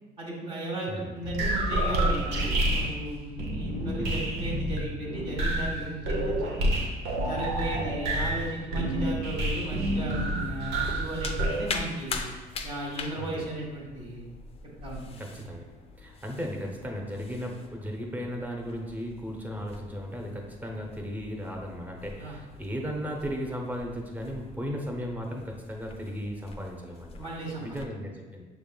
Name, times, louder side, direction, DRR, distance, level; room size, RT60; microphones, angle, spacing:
voice 1, 0.2-6.7 7.2-12.2 12.6-14.3 14.8-15.2 22.2-22.4 27.2-27.8, right 1 dB, 30° right, -4 dB, 1.3 m, -35 dB
sound 1, 1.2-11.6, right 1 dB, 80° right, 0.8 m, -29 dB
sound 2, 9.0-27.9, left 4 dB, 35° left, 0.5 m, -43 dB
voice 2, 13.1-13.5 15.2-15.6 16.0-27.3 27.6-28.4, equal, 10° right, 0 dB, 0.8 m, -36 dB
6.8 x 3.5 x 2.2 m, 1.3 s
cardioid pair, 110°, 17 cm